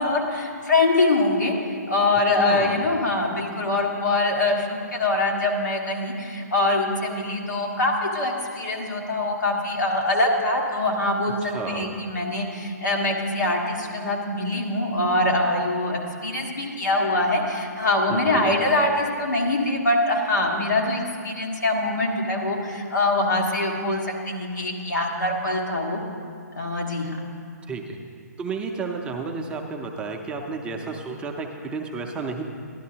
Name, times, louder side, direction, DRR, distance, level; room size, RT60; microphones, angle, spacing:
voice 1, 0.0-26.0 26.6-27.2, left 2 dB, 90° left, -1 dB, 1.7 m, -24 dB
voice 2, 2.4-2.9 11.4-12.1 18.1-18.5 27.7-28.0 28.4-32.4, right 4 dB, 10° right, 2 dB, 0.4 m, -32 dB
12.0 x 11.5 x 2.8 m, 2.3 s
hypercardioid pair, 145°, 9 cm